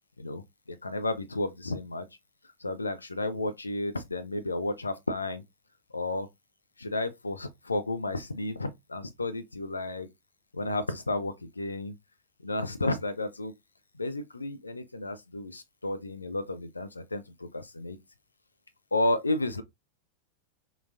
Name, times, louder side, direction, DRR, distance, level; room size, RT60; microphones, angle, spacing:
voice 1, 0.7-2.1 2.6-5.4 5.9-6.3 6.8-10.1 10.5-11.9 12.4-13.5 14.0-18.0 18.9-19.6, left 2 dB, 80° left, 0.4 m, -32 dB
3.8 x 2.3 x 2.5 m
figure-of-eight pair, 90°, 0 cm